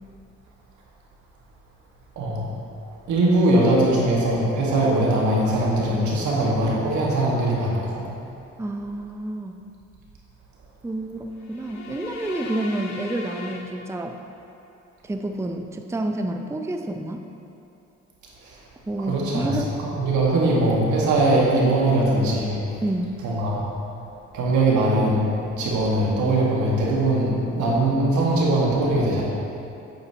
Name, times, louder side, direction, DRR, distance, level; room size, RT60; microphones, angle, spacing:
voice 1, 3.1-8.0 18.4-18.6 19.0-19.5 19.8-22.8 23.2-23.7 24.3-25.3 25.6-29.2, right 1 dB, 80° right, -4 dB, 1.9 m, -21 dB
voice 2, 8.6-9.5 10.8-14.2 15.0-17.2 18.9-19.7 22.8-23.2, right 1 dB, 10° right, 4 dB, 0.5 m, -29 dB
sound 1, 11.4-14.5, left 3 dB, 70° left, 0.9 m, -38 dB
8.7 x 8.7 x 3.0 m, 2.7 s
supercardioid pair, 65°, 29 cm